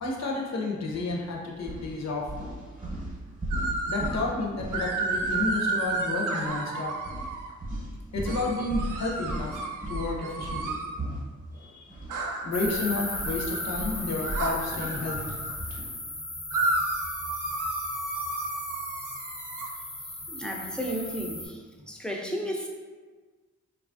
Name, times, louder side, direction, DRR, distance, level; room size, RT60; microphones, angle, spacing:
voice 1, 0.0-2.3 3.9-7.0 8.1-10.8 11.5-12.0 12.4-15.3, left 3 dB, 60° left, -1 dB, 0.7 m, -31 dB
sound 1, 0.9-1.1 1.6-6.0 6.3-6.5 7.0-12.2 12.5-15.9, right 1 dB, 25° right, 0.8 m, -37 dB
sound 2, 3.5-4.2 4.7-7.5 8.3-10.9 12.1-15.5 16.5-19.7, right 2 dB, 85° right, 0.5 m, -32 dB
sound 3, 12.5-21.5, left 2 dB, 85° left, 0.9 m, -37 dB
voice 2, 20.3-21.6 21.9-22.7, equal, 5° left, -1 dB, 0.5 m, -33 dB
3.0 x 2.4 x 2.5 m, 1.4 s
cardioid pair, 55°, 31 cm